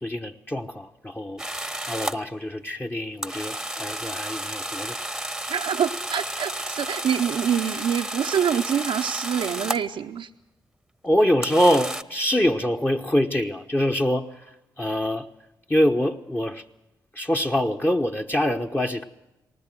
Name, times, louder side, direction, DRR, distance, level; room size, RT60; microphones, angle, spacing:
voice 1, 0.0-1.4 1.9-5.0 11.0-14.3 14.8-15.3 15.7-16.6 17.1-19.0, equal, 20° left, 5 dB, 1.2 m, -24 dB
sound 1, 1.4-2.2 3.2-9.9 11.4-12.0, right 1 dB, 5° right, 1.1 m, -32 dB
voice 2, 5.5-10.3, right 8 dB, 70° right, 0 dB, 0.7 m, -26 dB
19.5 x 19.0 x 7.6 m, 0.92 s
hypercardioid pair, 40°, 10 cm